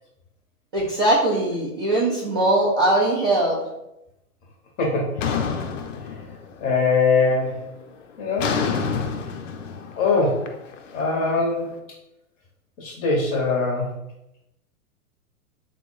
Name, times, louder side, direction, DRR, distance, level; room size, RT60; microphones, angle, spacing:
voice 1, 0.7-3.6, right 1 dB, 20° right, -7 dB, 0.3 m, -20 dB
sound 1, 5.2-6.7 7.1-7.5 8.4-11.5, left 6 dB, 60° left, 0.5 m, -28 dB
voice 2, 6.6-7.6 8.2-8.8 10.0-10.5 10.9-11.7 12.8-13.9, left 4 dB, 20° left, -1 dB, 0.7 m, -22 dB
3.6 x 2.0 x 3.6 m, 0.88 s
hypercardioid pair, 115°, 44 cm